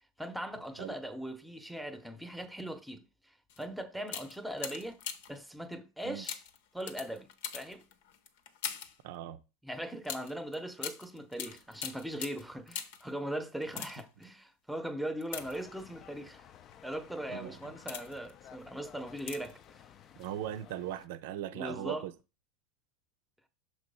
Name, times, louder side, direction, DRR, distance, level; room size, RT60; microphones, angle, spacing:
voice 1, 0.2-5.0 5.3-6.4 6.7-7.3 7.5-7.8 9.6-16.5 16.8-19.8 21.5-22.0, right 1 dB, ahead, 0.8 m, -40 dB
sound 1, 3.5-3.7 4.0-5.4 6.2-9.0 10.0-13.1 13.6-14.2 15.2-16.0 16.7-17.0 17.5-18.3 19.2-19.6 19.9-20.0, left 8 dB, 70° left, 0.8 m, -42 dB
voice 2, 9.0-9.4 17.3-17.7 20.2-22.1, right 12 dB, 70° right, 0.6 m, -39 dB
sound 2, 15.3-21.1, left 9 dB, 40° left, 0.4 m, -55 dB
5.9 x 3.2 x 5.4 m
hypercardioid pair, 105°, 0 cm